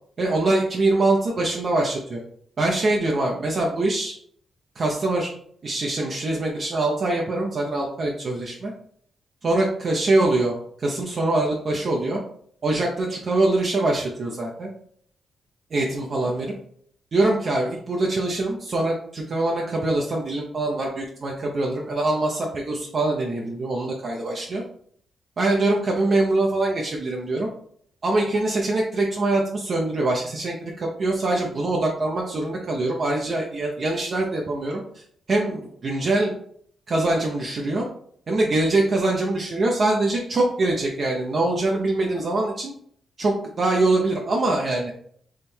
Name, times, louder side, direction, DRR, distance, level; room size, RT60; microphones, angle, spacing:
voice 1, 0.2-2.2 2.6-4.1 4.8-5.3 5.6-8.7 9.4-12.2 12.6-14.7 15.7-16.5 17.1-24.6 25.4-27.5 28.0-34.8 35.3-36.3 36.9-37.9 38.3-42.7 43.2-44.9, right 2 dB, 45° right, -1 dB, 0.7 m, -23 dB
3.6 x 3.3 x 4.3 m, 0.62 s
cardioid pair, 120°, 0 cm